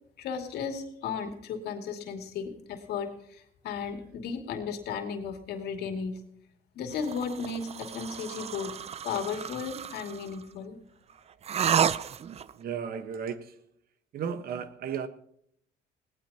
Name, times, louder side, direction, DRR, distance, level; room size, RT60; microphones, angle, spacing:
voice 1, 0.2-6.2 6.7-8.7 9.0-10.8, left 6 dB, 75° left, 5 dB, 2.6 m, -35 dB
sound 1, 6.9-10.3 11.4-12.5, right 8 dB, 40° right, 0.6 m, -31 dB
voice 2, 12.5-13.6 14.1-15.1, right 7 dB, 60° right, 11 dB, 1.3 m, -35 dB
19.5 x 18.0 x 2.9 m, 0.71 s
cardioid pair, 110°, 17 cm